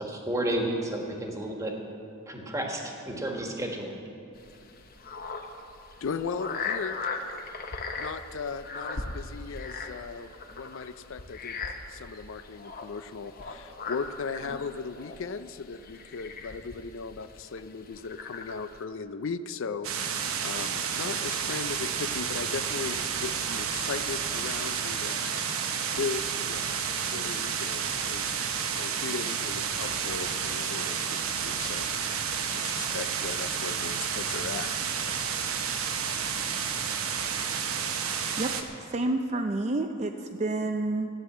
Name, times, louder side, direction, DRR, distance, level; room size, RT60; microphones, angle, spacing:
voice 1, 0.0-1.7 2.3-4.0, right 1 dB, 15° right, 1 dB, 1.5 m, -31 dB
sound 1, 4.3-18.8, left 4 dB, 45° left, 0.9 m, -39 dB
voice 2, 6.0-7.1 8.0-11.6 11.9-28.4 28.8-34.7, left 5 dB, 60° left, 12 dB, 0.4 m, -37 dB
sound 2, 19.8-38.6, right 7 dB, 80° right, 1.0 m, -31 dB
voice 3, 38.4-41.1, right 2 dB, 30° right, 5 dB, 0.5 m, -29 dB
14.0 x 9.6 x 7.3 m, 2.8 s
head